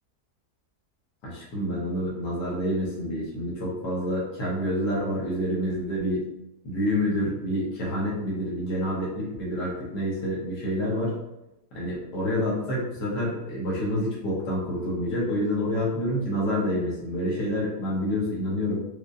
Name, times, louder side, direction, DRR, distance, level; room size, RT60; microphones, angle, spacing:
voice 1, 1.2-6.2 6.6-11.1 11.7-18.8, equal, 85° left, -5 dB, 1.6 m, -28 dB
5.0 x 2.1 x 2.5 m, 0.89 s
omnidirectional pair, 1.8 m